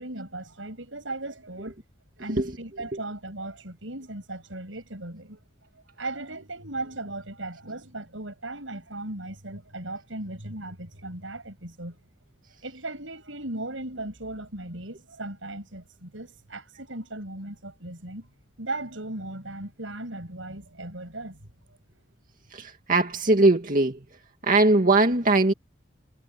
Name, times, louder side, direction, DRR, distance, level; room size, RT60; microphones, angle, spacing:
voice 1, 0.0-1.8 2.2-5.4 6.0-12.0 12.6-18.3 18.6-21.4, right 2 dB, 85° right, 6.9 m, -37 dB
voice 2, 22.5-24.0 24.4-25.5, right 2 dB, 45° right, 2.3 m, -20 dB
head